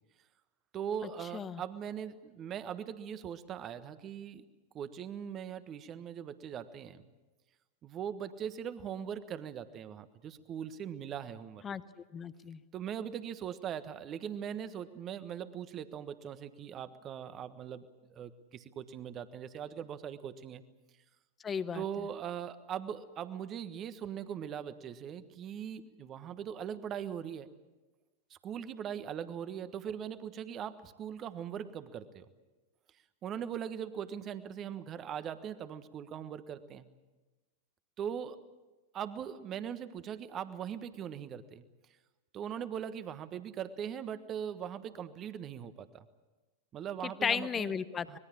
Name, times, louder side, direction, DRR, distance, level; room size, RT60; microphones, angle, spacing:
voice 1, 0.7-4.4 4.7-7.0 7.8-11.6 12.7-17.8 18.1-20.6 21.7-27.5 28.3-32.3 33.2-36.9 38.0-38.4 38.9-41.6 42.3-46.1 46.7-47.7 48.1-48.2, right 8 dB, 30° right, 12 dB, 1.4 m, -40 dB
voice 2, 12.1-12.6 21.4-21.8 47.0-48.1, left 7 dB, 20° left, 15 dB, 1.0 m, -34 dB
25.5 x 21.0 x 7.4 m, 1.1 s
figure-of-eight pair, 90°, 0 cm